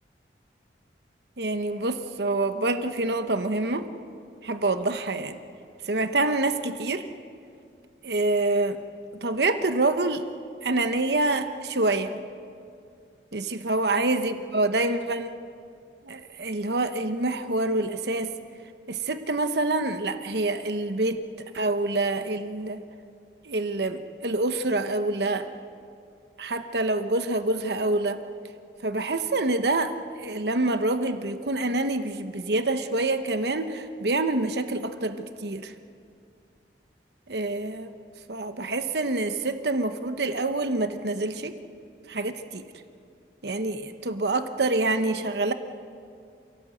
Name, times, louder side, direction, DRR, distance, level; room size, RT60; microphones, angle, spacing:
voice 1, 1.4-3.9 4.4-5.4 5.8-7.1 8.0-8.8 9.1-10.2 10.6-12.2 13.3-15.3 16.1-18.3 18.9-21.2 21.5-22.8 23.4-25.5 26.4-28.2 28.8-29.9 30.2-35.7 37.3-37.9 38.3-41.5 42.1-42.6 43.4-45.5, right 2 dB, 70° right, 8 dB, 1.0 m, -26 dB
27.5 x 17.0 x 7.9 m, 2.4 s
head